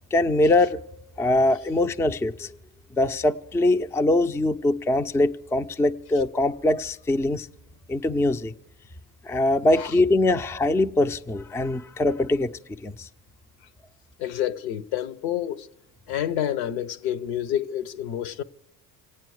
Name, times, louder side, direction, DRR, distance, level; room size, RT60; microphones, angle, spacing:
voice 1, 0.1-0.8 1.2-2.5 2.9-7.5 7.9-8.5 9.3-12.5 12.8-13.1, left 2 dB, 5° left, 0.4 m, -22 dB
voice 2, 14.2-15.7 16.1-18.4, left 11 dB, 75° left, 0.9 m, -28 dB
26.5 x 9.0 x 4.8 m
hypercardioid pair, 60°, 49 cm